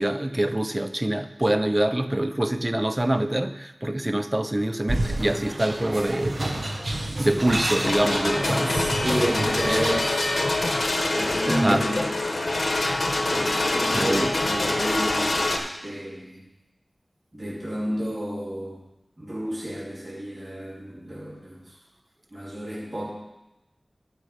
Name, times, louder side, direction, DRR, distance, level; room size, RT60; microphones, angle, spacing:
voice 1, 0.0-6.5 7.2-8.8 11.5-11.9 13.9-14.4, right 1 dB, 25° right, 10 dB, 0.6 m, -25 dB
sound 1, 4.9-10.0, right 1 dB, 55° right, 1.1 m, -29 dB
sound 2, 7.8-15.6, left 2 dB, 75° left, 0.9 m, -25 dB
voice 2, 8.6-10.3 11.1-12.5 13.3-16.4 17.3-18.8 19.2-21.7 22.3-23.1, right 1 dB, 40° right, -7 dB, 3.1 m, -31 dB
12.0 x 4.9 x 5.1 m, 0.98 s
wide cardioid pair, 50°, 0 cm